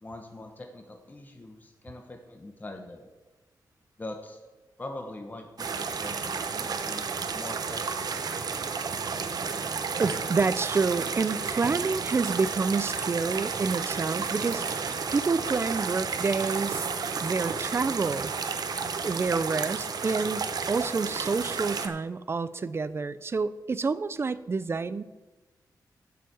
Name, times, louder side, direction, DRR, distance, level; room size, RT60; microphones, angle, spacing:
voice 1, 0.0-3.1 4.0-4.4 4.8-8.4, left 2 dB, 25° left, 4 dB, 1.0 m, -43 dB
sound 1, 5.6-21.9, right 5 dB, 65° right, 0.9 m, -32 dB
voice 2, 10.0-14.6 15.1-16.8 17.2-18.3 19.0-25.0, right 4 dB, 35° right, 16 dB, 0.5 m, -28 dB
7.8 x 7.0 x 7.9 m, 1.2 s
wide cardioid pair, 115°, 7 cm